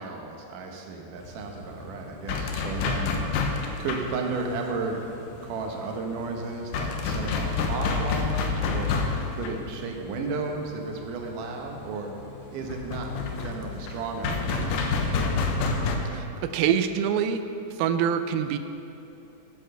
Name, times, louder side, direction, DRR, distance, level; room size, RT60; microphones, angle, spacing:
voice 1, 0.0-3.1 3.8-5.0 5.4-8.9 9.3-12.1 12.5-15.4, right 4 dB, 70° right, 2 dB, 2.5 m, -34 dB
sound 1, 1.2-16.0, left 4 dB, 75° left, 2.3 m, -29 dB
voice 2, 16.1-17.4 17.8-18.6, right 8 dB, 85° right, 10 dB, 2.4 m, -25 dB
9.5 x 9.0 x 6.5 m, 2.8 s
omnidirectional pair, 4.2 m